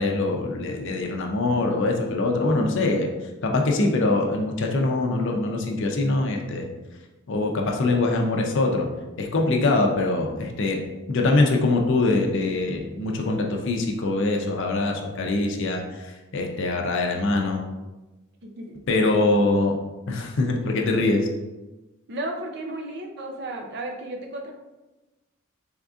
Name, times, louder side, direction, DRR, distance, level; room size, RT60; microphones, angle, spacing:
voice 1, 0.0-3.1 3.4-6.7 7.3-8.9 9.2-10.8 11.1-15.8 16.3-17.6 18.9-19.7 20.1-21.3, left 2 dB, 60° left, 2 dB, 0.5 m, -23 dB
voice 2, 18.4-19.4 22.1-24.5, right 1 dB, 55° right, 3 dB, 0.5 m, -34 dB
3.8 x 3.5 x 2.4 m, 1.1 s
head